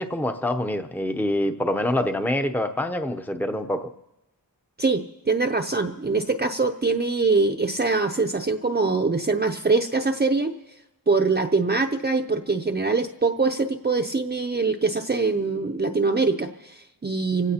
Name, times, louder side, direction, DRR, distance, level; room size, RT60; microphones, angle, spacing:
voice 1, 0.0-3.9, left 1 dB, 5° left, 7 dB, 0.7 m, -25 dB
voice 2, 4.8-10.5 11.1-17.5, right 3 dB, 25° right, 4 dB, 0.6 m, -23 dB
29.0 x 16.5 x 2.9 m, 1.0 s
wide cardioid pair, 75°, 37 cm